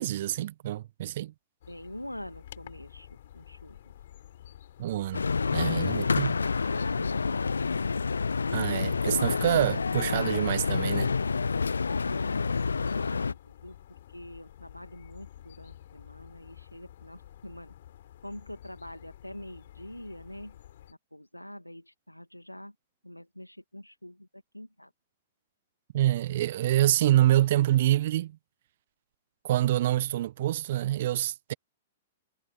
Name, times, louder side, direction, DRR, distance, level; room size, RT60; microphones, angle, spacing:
voice 1, 0.0-1.3 4.8-5.2 5.5-6.3 8.5-11.1 25.9-28.4 29.4-31.5, right 13 dB, 50° right, 1.4 m, -26 dB
sound 1, 1.6-20.9, left 11 dB, 55° left, 4.8 m, -50 dB
voice 2, 1.7-3.9 5.4-7.6 11.9-12.9 13.2-17.7 18.2-20.6 20.9-22.7 23.0-24.9, left 1 dB, 90° left, 2.3 m, -45 dB
sound 2, 5.1-13.3, left 4 dB, 75° left, 0.4 m, -28 dB
figure-of-eight pair, 105°, 0 cm